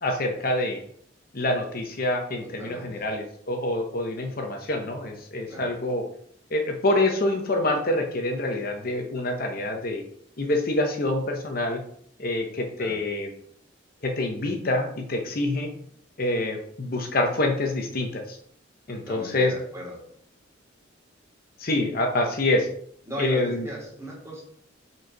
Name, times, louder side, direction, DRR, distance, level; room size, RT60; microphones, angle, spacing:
voice 1, 0.0-0.8 1.3-6.0 6.5-10.0 10.4-11.8 12.2-13.3 14.0-15.7 16.2-18.4 18.9-19.5 21.6-22.7 23.2-23.7, left 2 dB, 50° left, 3 dB, 0.9 m, -26 dB
voice 2, 2.4-3.1 5.5-5.7 12.8-13.0 18.9-20.0 23.1-24.4, right 1 dB, 15° right, -4 dB, 2.8 m, -37 dB
5.5 x 4.6 x 5.9 m, 0.65 s
head